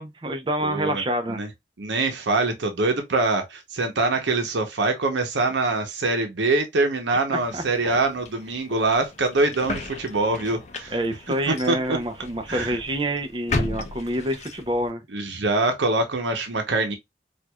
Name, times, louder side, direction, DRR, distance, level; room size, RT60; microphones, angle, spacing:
voice 1, 0.0-1.4 7.3-7.6 10.9-15.0, right 1 dB, 25° right, 0.6 m, -27 dB
voice 2, 0.6-1.0 1.3-1.5 1.8-10.9 11.5-12.0 12.5-12.7 15.1-17.0, right 3 dB, 85° right, 0.8 m, -24 dB
sound 1, 7.4-14.9, left 2 dB, 40° left, 0.6 m, -35 dB
4.5 x 2.4 x 2.2 m
head